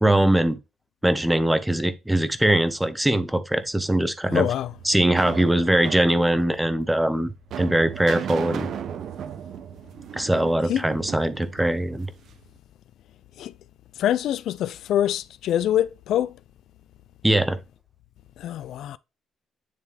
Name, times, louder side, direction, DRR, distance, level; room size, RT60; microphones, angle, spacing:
voice 1, 0.0-0.6 1.0-4.5 4.8-7.3 7.6-8.7 10.1-12.1 17.2-17.6, right 1 dB, 10° right, 0.9 m, -21 dB
voice 2, 4.3-4.7 10.7-10.8 13.4-13.5 14.0-16.3 18.4-19.0, left 11 dB, 80° left, 0.3 m, -24 dB
sound 1, 4.3-12.4, right 9 dB, 70° right, 0.6 m, -36 dB
9.5 x 3.5 x 3.3 m
cardioid pair, 90°, 0 cm